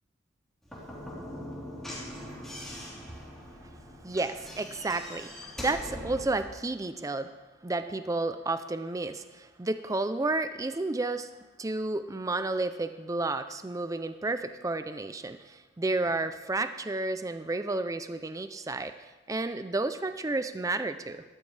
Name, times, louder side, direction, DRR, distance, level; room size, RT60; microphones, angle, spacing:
Slam / Knock, 0.6-6.5, left 1 dB, ahead, 3.5 m, -42 dB
voice 1, 4.0-7.3 7.6-11.3 11.6-21.2, right 2 dB, 15° right, 10 dB, 0.4 m, -31 dB
19.5 x 13.5 x 3.3 m, 1.2 s
head